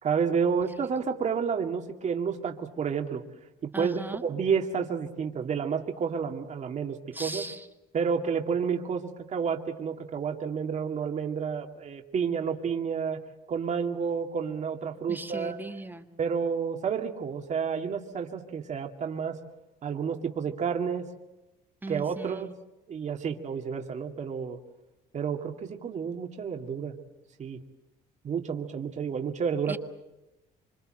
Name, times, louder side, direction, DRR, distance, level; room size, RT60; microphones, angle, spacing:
voice 1, 0.0-3.2 3.6-7.5 7.9-13.2 13.5-15.6 16.2-19.4 19.8-21.1 21.9-22.5 22.9-24.6 25.1-27.0 27.4-27.6 28.2-29.7, right 6 dB, 45° right, 4 dB, 2.1 m, -30 dB
voice 2, 3.7-4.2 7.1-7.7 15.1-16.1 21.8-22.5 29.7-29.8, right 2 dB, 10° right, 7 dB, 1.5 m, -38 dB
26.5 x 25.0 x 7.7 m, 0.99 s
cardioid pair, 110°, 17 cm